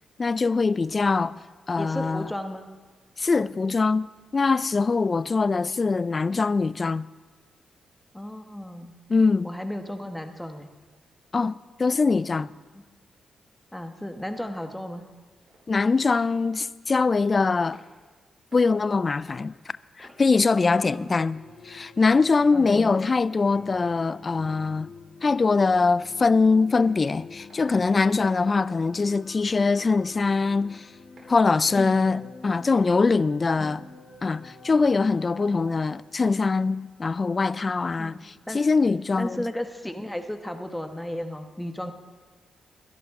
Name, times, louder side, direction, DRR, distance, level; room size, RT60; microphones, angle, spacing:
voice 1, 0.2-1.4 1.7-2.3 3.2-7.1 9.1-9.5 11.3-12.5 15.7-17.8 18.5-19.5 20.0-24.9 25.2-30.9 31.3-33.8 34.2-39.4, left 4 dB, 40° left, 0.4 m, -23 dB
voice 2, 1.8-2.6 8.1-8.9 9.4-10.7 12.7-12.8 13.7-15.1 20.5-21.1 22.5-23.0 28.5-28.7 33.6-33.8 38.0-38.6 39.2-41.9, left 1 dB, 5° left, 1.2 m, -34 dB
sound 1, 15.5-15.6 16.1-16.4 17.0-17.1 17.7-17.9 18.5-18.7 19.1-19.4 20.0-20.2 20.7-20.9 21.5-21.6 22.2-22.4 23.0-23.2 23.7-24.0 24.5-24.7 25.2-25.4 26.0-26.2 26.7-26.9 27.5-27.6 28.2-28.4 28.9-29.2 29.7-29.9 30.4-30.6 31.2-31.4 31.9-32.1 32.7-32.9 33.4-33.6, right 2 dB, 60° right, 4.1 m, -55 dB
sound 2, 21.3-35.8, left 4 dB, 60° left, 2.1 m, -48 dB
21.0 x 11.0 x 3.7 m
cardioid pair, 65°, 0 cm